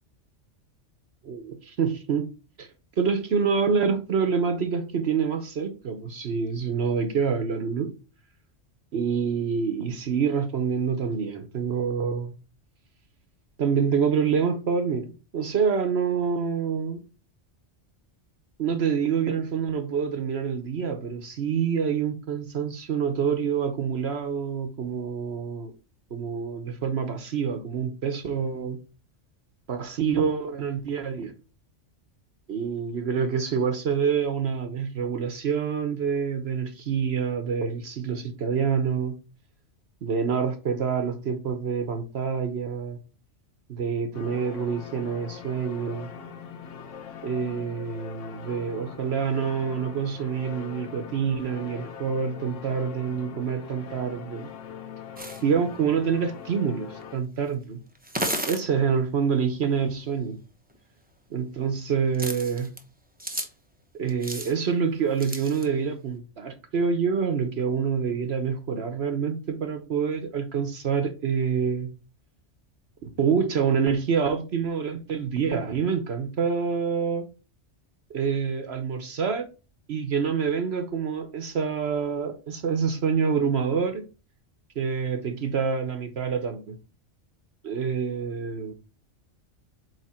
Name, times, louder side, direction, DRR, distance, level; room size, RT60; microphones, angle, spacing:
voice 1, 1.2-2.3 2.6-2.7 3.0-7.9 8.9-12.3 13.6-17.0 18.6-25.7 26.1-28.8 29.7-31.3 32.5-39.2 40.0-43.0 43.7-46.1 47.2-54.5 55.4-57.8 58.5-60.4 61.3-62.7 64.0-71.9 73.0-77.3 78.1-79.5 79.9-84.1 84.8-86.8 87.6-88.7, right 6 dB, 60° right, 1.1 m, -27 dB
sound 1, 44.1-57.2, left 6 dB, 85° left, 1.2 m, -42 dB
sound 2, 55.2-55.4 57.0-57.1 58.0-58.6 60.8-60.9 62.1-62.8 63.2-63.5 64.1-64.5 65.2-65.7, right 1 dB, 10° right, 0.9 m, -32 dB
8.4 x 3.5 x 4.3 m
omnidirectional pair, 1.2 m